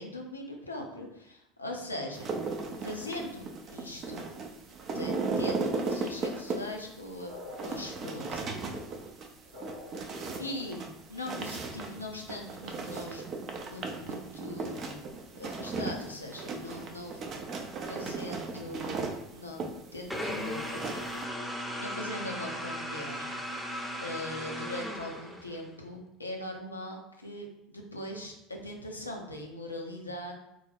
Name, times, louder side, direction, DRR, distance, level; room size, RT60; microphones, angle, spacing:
voice 1, 0.0-2.3 2.8-4.3 4.9-8.4 10.4-13.3 13.7-15.1 15.4-17.2 17.9-20.8 21.8-23.3 24.0-30.3, left 1 dB, 90° left, 1 dB, 0.5 m, -41 dB
sound 1, 2.1-21.3, right 3 dB, 40° right, 0.4 m, -36 dB
sound 2, 7.3-11.0, left 2 dB, 80° right, 0.7 m, -47 dB
sound 3, 20.1-25.7, equal, ahead, 0.6 m, -37 dB
3.7 x 2.2 x 3.3 m, 0.87 s
figure-of-eight pair, 70°, 0 cm